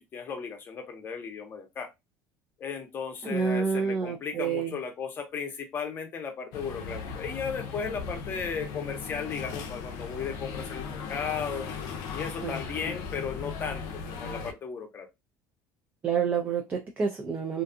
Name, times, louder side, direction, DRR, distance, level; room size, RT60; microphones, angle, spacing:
voice 1, 0.0-1.9 2.6-11.7 12.1-13.9 14.1-15.1, left 6 dB, 35° left, 4 dB, 0.7 m, -35 dB
voice 2, 3.2-4.8 12.4-12.6 16.0-17.6, right 6 dB, 25° right, 3 dB, 0.4 m, -28 dB
sound 1, 6.5-14.5, left 5 dB, 65° left, 0.5 m, -37 dB
2.5 x 2.3 x 2.5 m, 0.21 s
cardioid pair, 135°, 7 cm